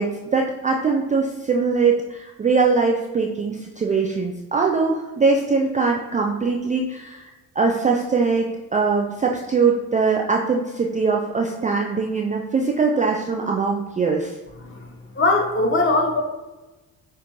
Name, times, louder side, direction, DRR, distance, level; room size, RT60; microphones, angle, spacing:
voice 1, 0.0-7.3 7.6-14.3, right 4 dB, 20° right, 0 dB, 0.4 m, -22 dB
voice 2, 14.6-16.2, left 2 dB, 30° left, 3 dB, 1.0 m, -21 dB
6.6 x 2.5 x 2.9 m, 1.1 s
hypercardioid pair, 50°, 42 cm